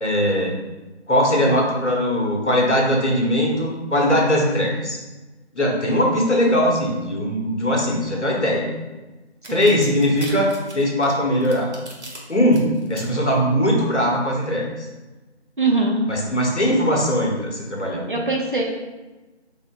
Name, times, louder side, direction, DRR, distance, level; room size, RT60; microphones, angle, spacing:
voice 1, 0.0-0.5 1.1-5.0 5.5-8.7 9.5-11.7 12.3-14.9 16.1-18.1, equal, 90° left, -1 dB, 1.2 m, -20 dB
sound 1, 9.4-12.2 12.5-13.0, right 1 dB, 75° right, 1.3 m, -39 dB
voice 2, 15.6-16.0 18.0-18.6, right 3 dB, 50° right, -1 dB, 0.7 m, -22 dB
4.0 x 3.7 x 2.3 m, 1.2 s
figure-of-eight pair, 175°, 34 cm